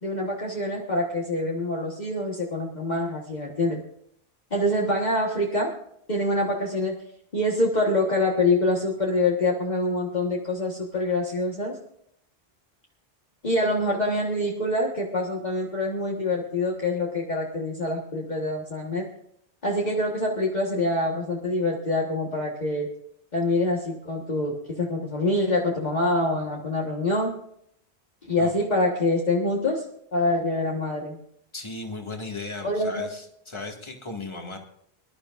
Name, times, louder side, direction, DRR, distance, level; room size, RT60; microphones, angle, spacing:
voice 1, 0.0-3.8 4.5-5.7 6.1-7.0 7.3-11.7 13.4-19.1 19.6-22.9 23.3-27.3 28.3-29.8 30.1-31.2 32.6-33.1, left 2 dB, 40° left, -2 dB, 1.6 m, -25 dB
voice 2, 31.5-34.6, left 3 dB, 25° left, 2 dB, 2.0 m, -36 dB
25.0 x 12.0 x 2.5 m, 0.71 s
omnidirectional pair, 1.1 m